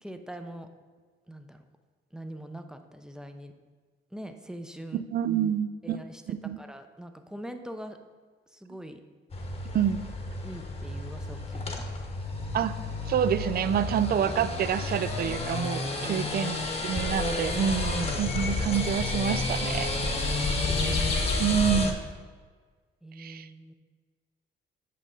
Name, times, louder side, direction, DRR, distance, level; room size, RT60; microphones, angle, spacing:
voice 1, 0.0-0.7 1.3-1.6 2.1-3.5 4.1-5.1 5.8-8.0 8.5-9.0 10.4-11.9 16.0-16.5 17.7-17.8 20.4-21.1 23.0-23.7, right 1 dB, 5° right, 7 dB, 0.6 m, -43 dB
voice 2, 4.9-6.0 6.3-6.6 9.7-10.1 12.5-12.7 13.1-16.6 16.8-19.9 21.4-22.0 23.2-23.5, right 8 dB, 50° right, 14 dB, 0.4 m, -27 dB
sound 1, 9.3-21.9, left 2 dB, 30° left, 1.1 m, -30 dB
Bird, 15.8-22.0, left 3 dB, 60° left, 1.4 m, -40 dB
8.5 x 5.3 x 3.8 m, 1.5 s
cardioid pair, 90°, 20 cm